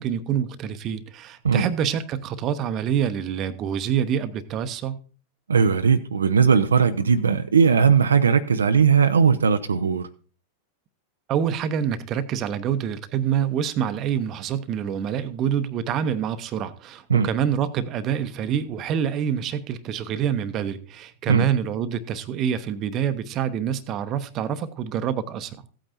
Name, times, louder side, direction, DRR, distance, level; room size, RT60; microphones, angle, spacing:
voice 1, 0.0-5.0 11.3-25.6, right 8 dB, 35° right, 0.9 m, -26 dB
voice 2, 5.5-10.1 17.1-17.3 21.3-21.4, right 6 dB, 70° right, 0.6 m, -18 dB
15.5 x 8.8 x 2.7 m
figure-of-eight pair, 90°, 0 cm